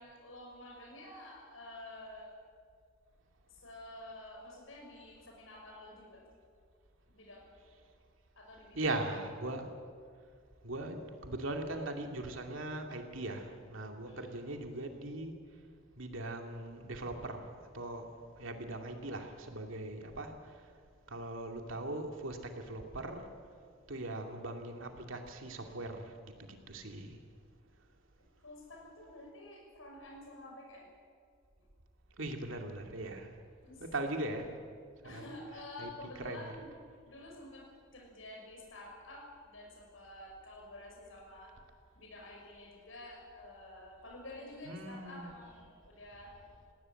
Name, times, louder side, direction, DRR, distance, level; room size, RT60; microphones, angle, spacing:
voice 1, 0.0-2.3 3.6-6.2 7.1-7.5 8.4-8.9 14.1-14.3 24.0-24.3 28.4-30.9 33.6-33.8 34.3-34.4 35.0-36.7 37.0-37.7 37.9-41.5 42.0-46.3, left 1 dB, 80° left, 0 dB, 6.2 m, -50 dB
voice 2, 8.7-9.7 10.6-15.6 16.0-20.7 21.1-23.3 23.9-27.2 32.2-33.4 33.8-34.5 35.0-35.3 35.8-35.9 36.2-36.4 44.7-45.3, right 2 dB, 80° right, 4 dB, 2.4 m, -40 dB
20.0 x 17.0 x 9.0 m, 2.1 s
head